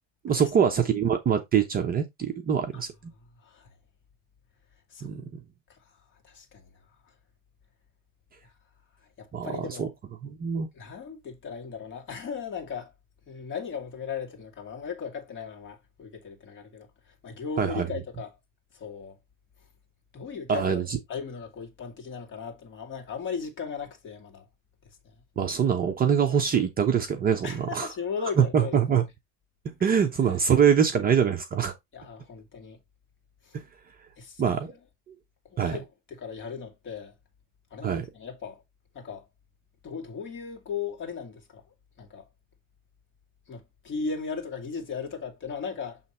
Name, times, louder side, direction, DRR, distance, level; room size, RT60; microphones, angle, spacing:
voice 1, 0.2-2.9 5.0-5.4 9.3-9.9 10.2-10.7 17.6-17.9 20.5-21.0 25.4-27.9 28.4-29.0 29.6-31.7 34.4-34.7 35.6-35.8 37.8-38.1, right 7 dB, 25° right, 0.7 m, -24 dB
voice 2, 6.2-6.7 9.2-9.9 10.7-12.9 13.3-16.9 17.2-18.4 18.7-19.2 20.1-24.5 27.4-28.8 31.9-32.8 33.5-33.6 34.2-34.6 35.5-37.1 37.7-38.6 38.9-39.2 39.8-41.6 42.0-42.3 43.5-46.0, left 6 dB, 30° left, 2.0 m, -37 dB
7.3 x 3.2 x 4.2 m
supercardioid pair, 145°, 38 cm